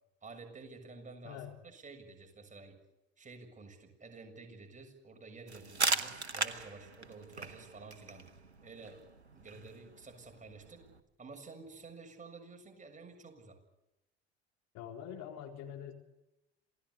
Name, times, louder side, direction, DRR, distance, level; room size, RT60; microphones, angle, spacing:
voice 1, 0.2-2.8 3.2-8.3 8.6-9.0 9.3-10.9 11.2-13.6, right 3 dB, 25° right, 4 dB, 7.0 m, -51 dB
sound 1, 5.5-11.0, right 4 dB, 90° right, 1.3 m, -38 dB
voice 2, 14.7-15.9, left 9 dB, 55° left, 4 dB, 4.0 m, -45 dB
27.5 x 18.5 x 8.5 m, 0.89 s
figure-of-eight pair, 60°, 32 cm